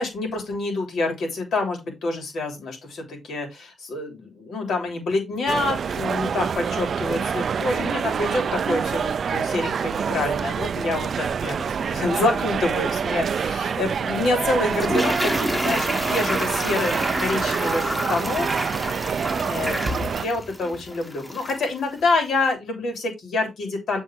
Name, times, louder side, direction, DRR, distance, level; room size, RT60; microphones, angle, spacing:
voice 1, 0.0-18.6 19.4-24.0, left 2 dB, 75° left, 3 dB, 3.1 m, -27 dB
sound 1, 5.5-20.3, right 7 dB, 60° right, 0.3 m, -26 dB
Toilet flush, 14.6-21.7 22.0-22.1, equal, 10° left, 1.4 m, -28 dB
7.3 x 3.7 x 4.4 m, 0.21 s
cardioid pair, 70°, 0 cm